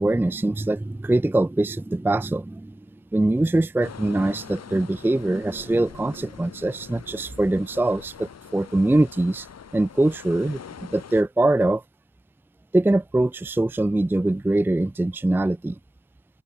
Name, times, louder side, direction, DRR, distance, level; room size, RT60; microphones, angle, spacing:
voice 1, 0.0-2.8 3.1-9.5 9.7-10.6 10.9-11.8 12.7-15.8, right 2 dB, 5° right, 0.5 m, -23 dB
sound 1, 3.8-11.2, left 7 dB, 60° left, 4.9 m, -44 dB
open air
wide cardioid pair, 130°, 30 cm